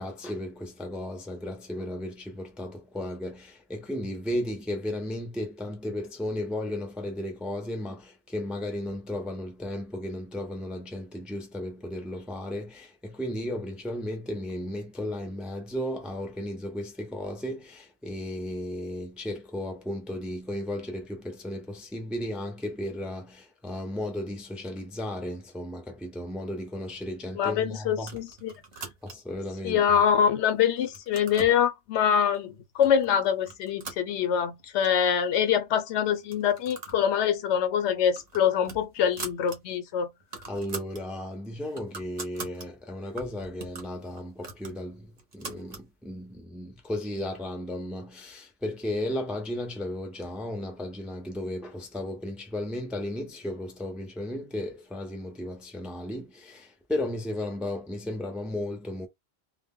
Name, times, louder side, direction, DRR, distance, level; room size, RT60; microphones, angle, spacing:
voice 1, 0.0-28.2 29.0-29.8 40.5-59.1, left 1 dB, ahead, 0.3 m, -34 dB
voice 2, 27.4-28.5 29.6-40.1, left 8 dB, 85° left, 0.9 m, -24 dB
sound 1, 28.0-29.4 30.0-30.5 30.8-31.6 32.3-32.4 32.8-33.1 33.4-34.7 35.0-35.1 35.3-35.4 36.2-37.0 37.4-37.5 37.9-39.6 39.9-40.0 40.2-41.0 41.4-42.7 43.2-45.9, right 4 dB, 45° right, 0.7 m, -42 dB
2.1 x 2.0 x 3.5 m
omnidirectional pair, 1.1 m